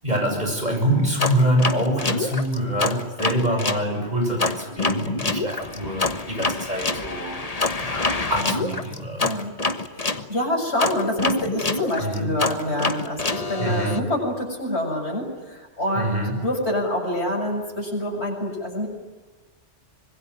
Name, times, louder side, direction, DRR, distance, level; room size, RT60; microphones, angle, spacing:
voice 1, 0.0-7.4 7.8-9.3 12.0-12.3 13.6-14.0 15.9-16.4, right 1 dB, 35° right, 3 dB, 7.6 m, -25 dB
sound 1, 1.2-3.8 4.4-10.2 10.8-14.0, left 3 dB, 30° left, 1.4 m, -26 dB
voice 2, 9.2-9.6 9.9-18.9, left 1 dB, 60° left, 1 dB, 7.5 m, -27 dB
25.5 x 21.5 x 9.9 m, 1.3 s
omnidirectional pair, 1.2 m